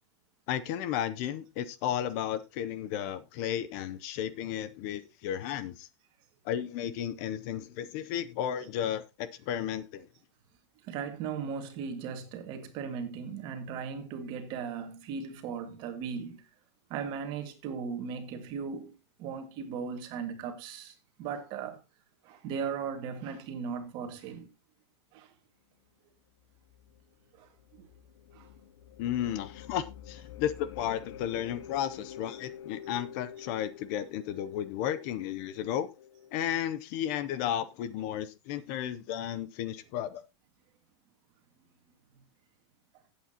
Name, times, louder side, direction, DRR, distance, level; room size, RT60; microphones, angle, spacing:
voice 1, 0.5-5.9 6.4-10.1 29.0-35.9 36.3-40.2, left 10 dB, 35° left, 0.6 m, -33 dB
voice 2, 10.8-16.4 16.9-18.9 19.2-21.8 22.2-24.5 25.1-25.3 27.4-27.9 28.3-28.5 32.9-33.0, right 6 dB, 30° right, 1.9 m, -37 dB
sound 1, 26.4-36.7, left 9 dB, 80° left, 0.7 m, -48 dB
15.5 x 8.4 x 2.9 m
supercardioid pair, 170°, 15 cm